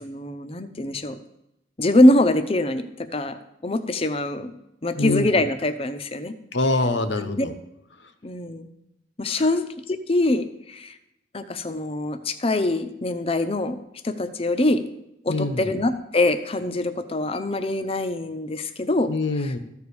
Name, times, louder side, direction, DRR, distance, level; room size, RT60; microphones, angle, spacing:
voice 1, 0.0-1.2 1.8-3.4 3.6-4.5 4.8-6.3 7.2-7.5 8.2-8.7 9.2-10.9 11.3-13.8 14.0-14.8 15.2-19.1, left 1 dB, 30° left, 9 dB, 0.7 m, -23 dB
voice 2, 5.0-5.3 6.5-7.5 9.3-9.5 15.3-15.7 19.1-19.6, left 2 dB, 75° left, 9 dB, 1.0 m, -24 dB
13.5 x 4.8 x 6.9 m, 0.86 s
head